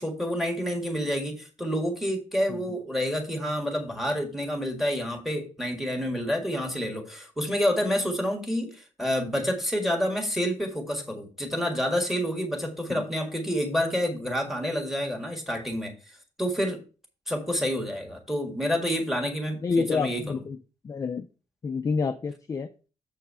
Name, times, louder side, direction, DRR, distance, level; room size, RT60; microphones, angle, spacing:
voice 1, 0.0-15.9 16.4-16.8 17.3-20.2, equal, ahead, 3 dB, 1.7 m, -28 dB
voice 2, 19.6-20.6 20.8-21.3 21.6-22.7, left 4 dB, 25° left, 6 dB, 0.4 m, -28 dB
7.3 x 4.5 x 5.5 m, 0.34 s
wide cardioid pair, 175°, 13 cm